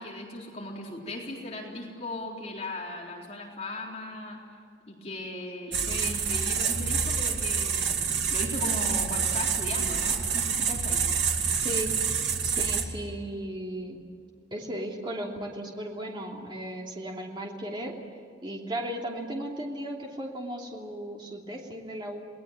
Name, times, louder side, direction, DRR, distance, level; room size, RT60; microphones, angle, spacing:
voice 1, 0.0-4.4 4.9-11.0, left 2 dB, 35° left, -2 dB, 3.9 m, -37 dB
sound 1, 5.7-12.8, right 6 dB, 75° right, 2.6 m, -27 dB
voice 2, 11.5-11.9 12.4-14.0 14.5-17.9 18.4-22.3, right 1 dB, 25° right, -1 dB, 3.1 m, -36 dB
29.0 x 19.5 x 9.0 m, 2.3 s
head